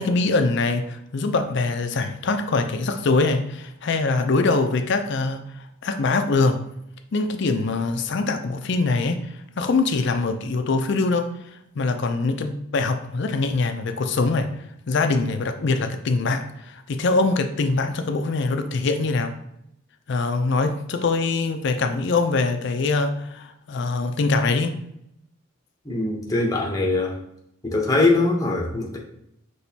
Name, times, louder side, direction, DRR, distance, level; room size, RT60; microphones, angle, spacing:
voice 1, 0.0-5.4 5.8-6.6 7.1-11.3 11.7-14.5 14.9-19.3 20.1-24.8, left 3 dB, 60° left, 8 dB, 0.5 m, -23 dB
voice 2, 25.8-27.2 27.6-29.0, left 2 dB, 20° left, -1 dB, 0.7 m, -22 dB
6.0 x 3.1 x 2.8 m, 0.78 s
head